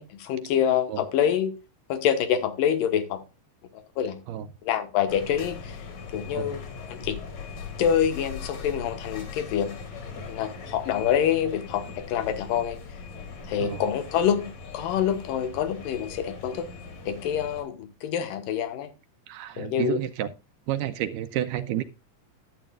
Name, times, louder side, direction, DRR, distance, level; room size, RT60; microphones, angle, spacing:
voice 1, 0.0-1.5 1.9-3.2 3.7-4.2 4.6-5.9 6.1-6.6 6.9-7.2 7.8-9.7 10.3-12.8 13.5-14.5 14.7-16.7 17.1-18.9 19.6-20.0, left 9 dB, 75° left, 10 dB, 2.8 m, -26 dB
sound 1, 5.1-17.6, left 5 dB, 50° left, 3.4 m, -40 dB
voice 2, 19.3-20.3 20.7-21.8, right 12 dB, 80° right, 10 dB, 2.0 m, -30 dB
11.0 x 9.3 x 2.4 m, 0.28 s
omnidirectional pair, 4.1 m